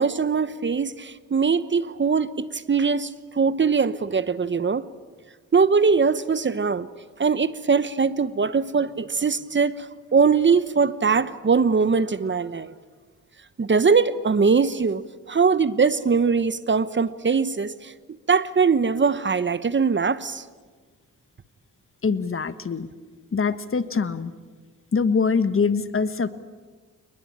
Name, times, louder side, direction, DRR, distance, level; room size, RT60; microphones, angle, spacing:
voice 1, 0.0-4.9 5.5-6.9 7.2-12.7 13.6-17.9 18.3-20.4, right 5 dB, 35° right, 1.0 m, -21 dB
voice 2, 22.0-22.9 23.3-24.3 24.9-26.3, left 5 dB, 40° left, 1.5 m, -23 dB
28.5 x 20.5 x 8.8 m
cardioid pair, 70°, 33 cm